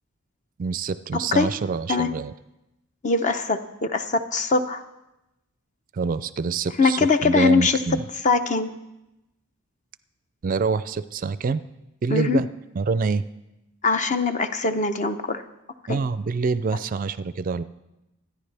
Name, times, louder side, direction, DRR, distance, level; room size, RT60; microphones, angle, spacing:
voice 1, 0.6-2.3 5.9-8.0 10.4-11.6 12.0-12.5 12.7-13.2 15.9-17.6, right 4 dB, 40° right, 14 dB, 0.4 m, -26 dB
voice 2, 3.0-3.6 3.9-4.8 6.8-7.8 8.2-8.7 12.1-12.4 13.8-15.4 15.9-16.0, left 4 dB, 35° left, 9 dB, 0.7 m, -21 dB
25.5 x 10.0 x 3.4 m, 0.93 s
head